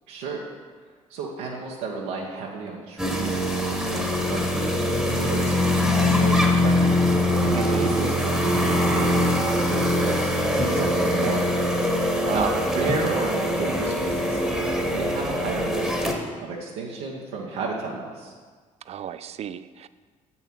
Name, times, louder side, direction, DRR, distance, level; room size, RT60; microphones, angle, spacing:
voice 1, 0.1-0.4 1.1-3.4 3.9-5.6 6.0-7.0 7.4-11.5 12.3-14.4 14.9-16.0 16.4-18.3, right 4 dB, 70° right, -2 dB, 1.0 m, -32 dB
sound 1, 3.0-16.1, left 1 dB, ahead, 1.4 m, -23 dB
voice 2, 7.5-7.9 12.2-12.6 18.9-19.9, right 10 dB, 40° right, 14 dB, 0.4 m, -33 dB
7.8 x 5.6 x 4.4 m, 1.5 s
figure-of-eight pair, 50°, 17 cm